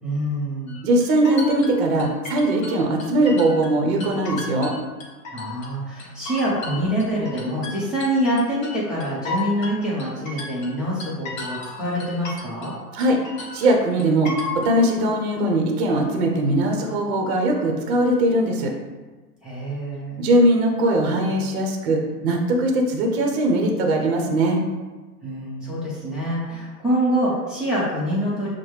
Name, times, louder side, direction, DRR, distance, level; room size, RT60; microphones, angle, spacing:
voice 1, 0.0-0.8 5.3-12.8 19.4-20.2 25.2-28.5, equal, ahead, -8 dB, 0.7 m, -25 dB
sound 1, 0.7-3.7 4.0-5.7 6.0-12.8 13.0-14.7, left 3 dB, 55° left, 1.3 m, -34 dB
voice 2, 0.8-4.7 12.9-13.2 13.5-18.7 20.2-24.6, right 1 dB, 40° right, 2 dB, 0.8 m, -20 dB
6.2 x 2.2 x 3.1 m, 1.3 s
hypercardioid pair, 125°, 48 cm